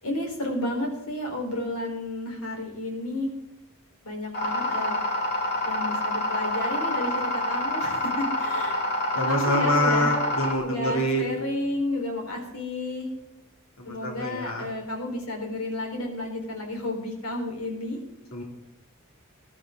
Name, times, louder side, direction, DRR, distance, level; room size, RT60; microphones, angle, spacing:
voice 1, 0.0-3.3 4.0-5.0 5.6-8.8 9.1-10.2 10.6-13.1 13.8-18.0, left 1 dB, 90° left, 1 dB, 4.3 m, -32 dB
sound 1, 4.3-10.5, left 1 dB, 50° left, 2.9 m, -27 dB
voice 2, 9.1-11.3 13.8-14.7 18.3-18.4, left 1 dB, 65° left, 0 dB, 2.8 m, -26 dB
20.0 x 12.0 x 3.8 m, 0.88 s
head